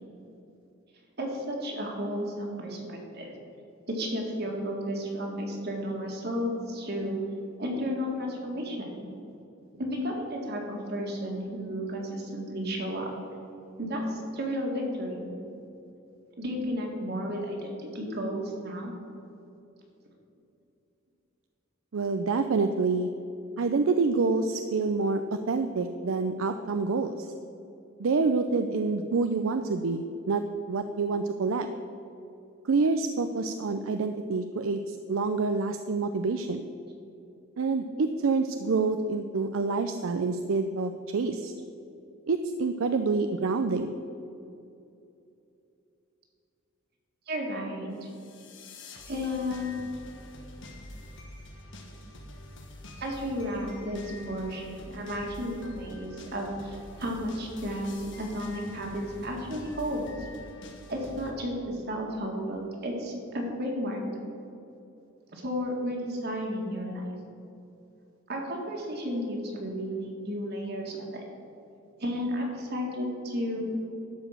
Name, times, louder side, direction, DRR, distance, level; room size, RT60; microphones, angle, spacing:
voice 1, 1.2-3.3 3.9-7.2 7.6-9.0 9.8-13.1 13.8-15.2 16.4-18.9 47.3-48.1 49.1-49.9 53.0-57.9 58.2-60.1 60.9-64.0 65.3-67.0 68.3-71.2 72.0-73.7, equal, 55° right, 0 dB, 2.0 m, -33 dB
voice 2, 21.9-23.1 23.6-27.3 28.0-30.4 30.7-31.7 32.6-36.7 37.6-41.5 42.3-43.9, right 4 dB, 75° right, 8 dB, 0.5 m, -27 dB
sound 1, 48.0-61.3, left 1 dB, 65° left, 1.3 m, -46 dB
12.0 x 5.1 x 7.4 m, 2.8 s
head